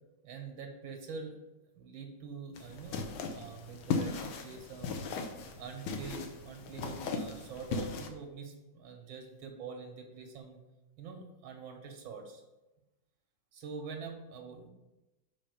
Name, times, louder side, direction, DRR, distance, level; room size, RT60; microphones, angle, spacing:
voice 1, 0.2-1.4 1.7-5.0 5.6-10.6 11.0-12.4 13.5-14.7, right 5 dB, 85° right, 3 dB, 2.1 m, -45 dB
sound 1, 2.6-8.1, left 4 dB, 85° left, 1.7 m, -37 dB
5.7 x 5.0 x 6.5 m, 1.0 s
omnidirectional pair, 2.1 m